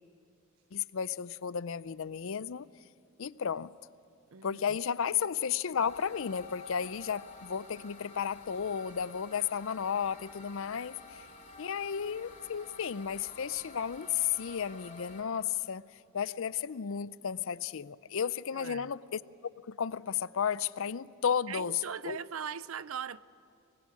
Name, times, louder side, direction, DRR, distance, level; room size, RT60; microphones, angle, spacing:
voice 1, 0.7-2.7 3.2-3.7 4.4-11.2 11.6-19.2 19.6-22.2, left 7 dB, 65° left, 0.5 m, -33 dB
voice 2, 4.3-4.8 18.5-18.9 21.5-23.2, right 7 dB, 70° right, 0.6 m, -40 dB
sound 1, 5.8-15.2, left 3 dB, 35° left, 3.4 m, -50 dB
24.5 x 20.0 x 9.8 m
head